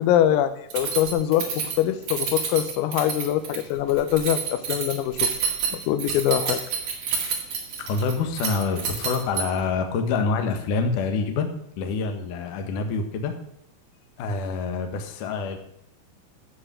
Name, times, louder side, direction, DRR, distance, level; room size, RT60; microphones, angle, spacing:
voice 1, 0.0-1.5 1.8-5.2 5.9-6.6, left 11 dB, 85° left, 11 dB, 3.7 m, -23 dB
Keys jangling, 0.7-9.7, right 6 dB, 45° right, 2.2 m, -29 dB
voice 2, 7.8-11.5 11.8-13.3 14.2-15.6, left 4 dB, 70° left, 5 dB, 1.9 m, -26 dB
13.0 x 6.9 x 7.5 m, 0.72 s
omnidirectional pair, 6.0 m